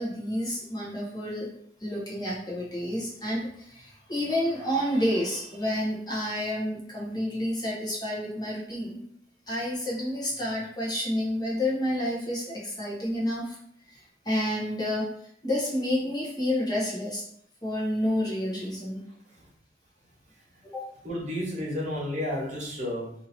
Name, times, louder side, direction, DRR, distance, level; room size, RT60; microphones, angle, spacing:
voice 1, 0.0-1.5 1.8-9.0 9.5-13.6 14.2-15.1 15.4-17.2 17.6-19.0 20.6-20.9, left 1 dB, 25° left, -5 dB, 1.0 m, -29 dB
voice 2, 21.0-23.1, left 1 dB, 45° right, -5 dB, 1.3 m, -31 dB
2.9 x 2.8 x 4.1 m, 0.67 s
head